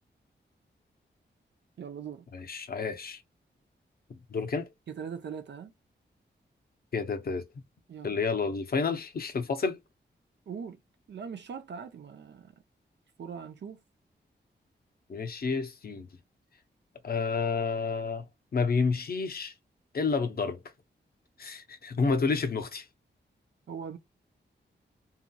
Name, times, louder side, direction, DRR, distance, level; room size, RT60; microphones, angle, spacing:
voice 1, 1.8-2.2 4.9-5.7 7.9-8.1 10.5-10.8 11.1-12.5 13.2-13.8 23.7-24.0, right 7 dB, 70° right, 0.6 m, -40 dB
voice 2, 2.3-3.2 4.1-4.7 6.9-7.5 8.0-9.8 15.1-16.1 17.0-19.5 19.9-20.6 21.4-22.9, left 4 dB, 55° left, 0.6 m, -30 dB
2.9 x 2.8 x 2.2 m
cardioid pair, 75°, 19 cm